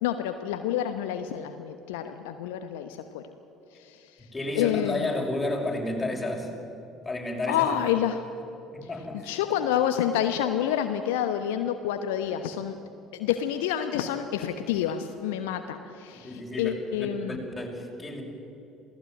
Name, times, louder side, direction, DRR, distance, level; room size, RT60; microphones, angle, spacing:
voice 1, 0.0-3.3 3.7-5.1 7.5-8.3 9.2-12.8 13.1-17.4, left 10 dB, 65° left, 8 dB, 1.0 m, -28 dB
voice 2, 4.2-6.5 7.0-7.6 8.7-9.3 16.2-16.7 17.3-18.2, left 2 dB, 15° left, 0 dB, 6.0 m, -31 dB
27.5 x 17.5 x 9.2 m, 2.9 s
figure-of-eight pair, 55°, 0 cm